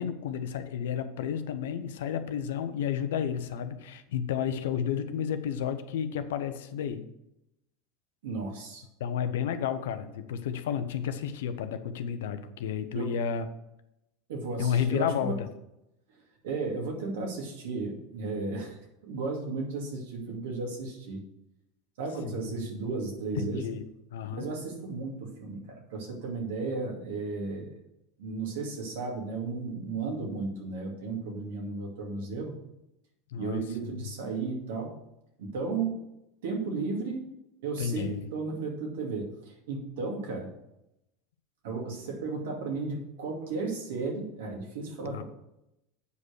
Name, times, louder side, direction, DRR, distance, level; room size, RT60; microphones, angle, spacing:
voice 1, 0.0-7.0 9.0-13.5 14.6-15.5 22.3-22.7 23.4-23.8 24.1-24.5 33.3-34.1 37.8-38.3 45.0-45.2, left 8 dB, 75° left, 10 dB, 0.8 m, -32 dB
voice 2, 8.2-8.8 12.9-13.1 14.3-15.3 16.4-18.8 19.0-21.2 22.0-23.6 24.3-25.6 25.9-27.7 28.2-32.5 33.3-34.9 35.4-36.1 36.4-37.2 37.6-40.5 41.6-45.2, right 4 dB, 75° right, 0 dB, 2.5 m, -34 dB
8.2 x 5.1 x 6.4 m, 0.85 s
hypercardioid pair, 90°, 0 cm